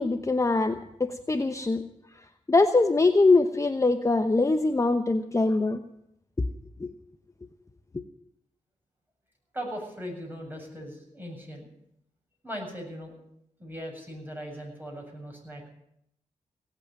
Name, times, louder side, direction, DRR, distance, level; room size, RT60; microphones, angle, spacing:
voice 1, 0.0-1.8 2.5-5.8 6.4-6.5 6.8-6.9 7.9-8.0, left 3 dB, 25° left, 8 dB, 0.9 m, -23 dB
voice 2, 9.5-11.7 12.4-13.1 13.6-15.7, equal, 15° right, 1 dB, 7.6 m, -39 dB
17.5 x 8.4 x 9.2 m, 0.77 s
cardioid pair, 60°, 13 cm